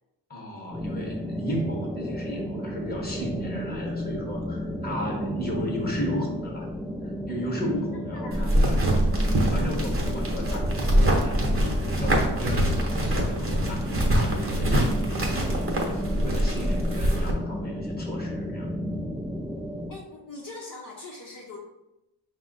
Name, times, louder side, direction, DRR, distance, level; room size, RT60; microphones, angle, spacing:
voice 1, 0.3-6.7 7.3-8.8 9.3-11.4 11.8-18.7, equal, 25° left, 0 dB, 1.0 m, -35 dB
sound 1, 0.7-19.9, equal, ahead, 0.3 m, -33 dB
sound 2, 8.3-17.3, right 1 dB, 35° right, 0.9 m, -24 dB
voice 2, 19.9-21.6, left 3 dB, 50° left, -3 dB, 0.7 m, -41 dB
5.5 x 2.1 x 3.9 m, 0.92 s
wide cardioid pair, 115°, 41 cm